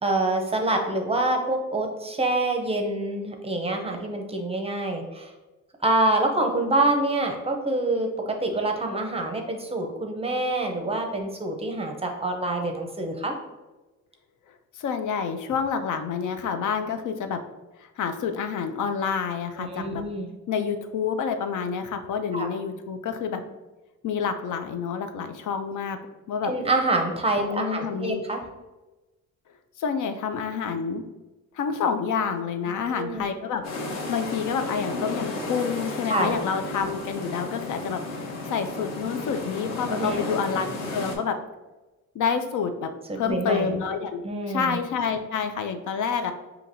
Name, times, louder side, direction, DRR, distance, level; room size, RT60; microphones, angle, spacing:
voice 1, 0.0-5.3 5.8-8.1 8.4-13.3 19.7-20.3 22.3-22.5 26.4-28.4 32.7-33.2 36.1-36.4 39.9-40.2 43.1-43.7 44.2-44.8, right 2 dB, 20° right, 3 dB, 0.5 m, -26 dB
voice 2, 14.8-17.4 17.8-20.0 20.5-23.4 24.0-26.0 26.3-26.5 27.4-28.2 29.8-31.0 31.5-33.6 33.9-38.0 38.5-41.4 42.1-44.2 44.5-46.3, left 6 dB, 70° left, 7 dB, 0.5 m, -28 dB
sound 1, 33.6-41.1, left 2 dB, 55° left, 0.9 m, -33 dB
5.7 x 2.8 x 2.6 m, 1.1 s
cardioid pair, 140°, 31 cm